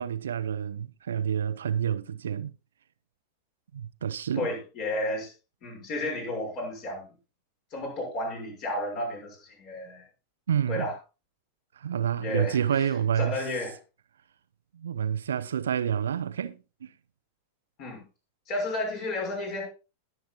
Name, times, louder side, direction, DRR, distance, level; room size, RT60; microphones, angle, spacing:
voice 1, 0.0-2.5 3.7-4.5 10.5-10.9 11.8-13.4 14.7-16.9, right 8 dB, 65° right, 0.6 m, -28 dB
voice 2, 4.4-5.3 5.6-7.0 7.7-10.0 10.7-11.0 12.1-12.6 13.2-13.8 17.8-18.0 18.5-19.7, left 1 dB, 40° left, 6.6 m, -32 dB
20.5 x 8.0 x 2.5 m
figure-of-eight pair, 90°, 0 cm